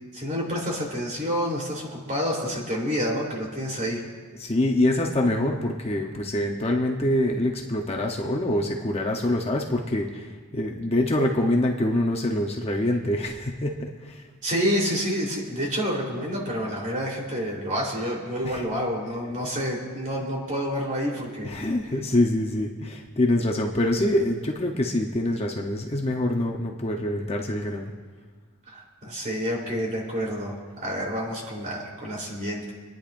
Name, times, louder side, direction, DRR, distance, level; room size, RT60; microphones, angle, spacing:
voice 1, 0.1-4.0 14.4-21.6 28.7-32.7, equal, 35° right, -3 dB, 3.6 m, -28 dB
voice 2, 4.4-10.3 10.5-14.2 18.4-18.6 21.4-27.9, left 1 dB, 25° left, 1 dB, 0.9 m, -25 dB
29.5 x 10.5 x 2.6 m, 1.5 s
head